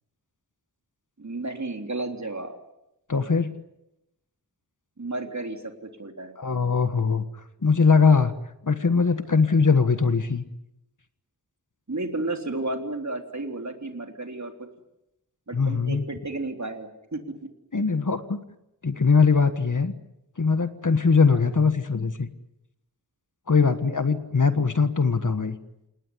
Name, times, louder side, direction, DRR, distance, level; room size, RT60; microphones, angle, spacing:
voice 1, 1.2-2.6 5.0-5.7 6.0-6.4 11.9-14.5 15.5-17.2 21.3-21.4 23.6-23.7, right 2 dB, 45° right, 4 dB, 3.5 m, -32 dB
voice 2, 3.1-3.5 6.4-7.2 7.6-8.3 8.6-10.4 15.5-16.0 17.7-18.4 18.8-19.9 20.4-22.3 23.5-25.6, left 5 dB, 50° left, 10 dB, 1.6 m, -21 dB
28.5 x 19.0 x 9.9 m, 0.89 s
wide cardioid pair, 75°, 39 cm